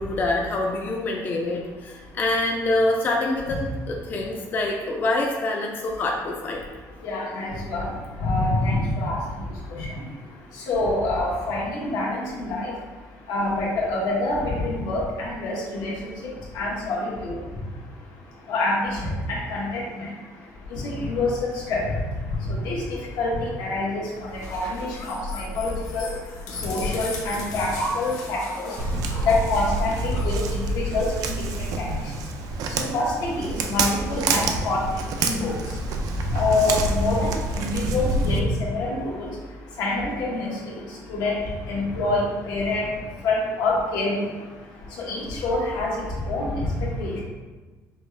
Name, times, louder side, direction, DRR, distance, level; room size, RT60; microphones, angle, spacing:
voice 1, 0.0-3.6 3.9-6.6, left 2 dB, 30° left, -1 dB, 0.4 m, -25 dB
voice 2, 7.0-7.9 8.2-9.2 9.8-9.9 10.7-12.7 13.3-16.1 16.5-17.3 18.5-20.1 20.7-21.8 22.4-24.0 24.3-26.1 26.6-28.7 29.2-31.9 32.9-34.8 35.2-35.5 36.3-39.3 39.8-40.8 41.1-41.3 41.7-42.9 43.2-44.2 45.0-47.2, left 2 dB, 85° left, -4 dB, 1.2 m, -26 dB
sound 1, 24.3-31.2, left 1 dB, 60° left, 0.8 m, -35 dB
Walk footsteps, 28.8-38.4, right 3 dB, 70° right, 0.4 m, -28 dB
5.3 x 2.3 x 3.2 m, 1.3 s
cardioid pair, 165°, 6 cm